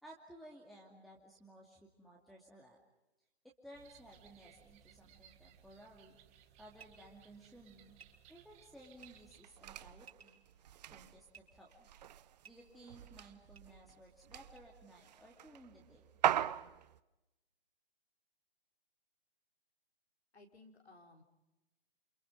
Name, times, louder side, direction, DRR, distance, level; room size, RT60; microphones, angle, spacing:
voice 1, 0.0-2.8 3.4-6.2 6.6-8.0 8.3-10.4 10.9-11.9 12.5-16.1, right 1 dB, ahead, -5 dB, 2.6 m, -57 dB
sound 1, 3.7-9.4, right 9 dB, 20° right, 1.8 m, -63 dB
sound 2, 6.7-6.9 8.0-8.1 9.0-9.1 10.0-10.4 11.3-11.4 12.4-12.5 13.5-13.6 14.5-14.6, right 7 dB, 75° right, 5.5 m, -56 dB
sound 3, 9.0-17.0, right 11 dB, 40° right, 0.9 m, -41 dB
voice 2, 20.3-21.2, left 2 dB, 85° left, 2 dB, 5.1 m, -59 dB
28.5 x 28.0 x 5.3 m, 0.98 s
figure-of-eight pair, 135°, 32 cm